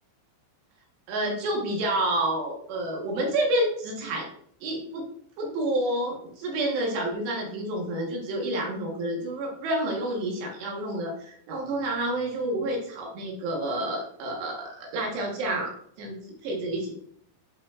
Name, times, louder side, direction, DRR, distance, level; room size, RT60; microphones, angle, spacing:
voice 1, 1.1-4.3 4.6-5.1 5.4-15.7 16.0-16.1 16.4-16.9, right 1 dB, 70° right, 0 dB, 3.0 m, -29 dB
11.0 x 5.4 x 2.4 m, 0.65 s
omnidirectional pair, 5.9 m